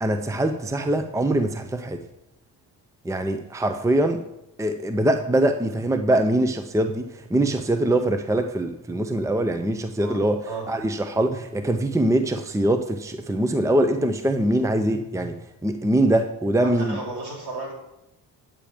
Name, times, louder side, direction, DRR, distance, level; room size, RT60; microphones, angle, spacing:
voice 1, 0.0-2.0 3.0-4.2 4.6-10.4 10.7-15.3 15.6-17.0, right 1 dB, 5° right, 7 dB, 0.7 m, -23 dB
voice 2, 16.6-17.7, right 3 dB, 70° right, -4 dB, 4.6 m, -33 dB
9.2 x 8.7 x 5.1 m, 0.87 s
cardioid pair, 85°, 41 cm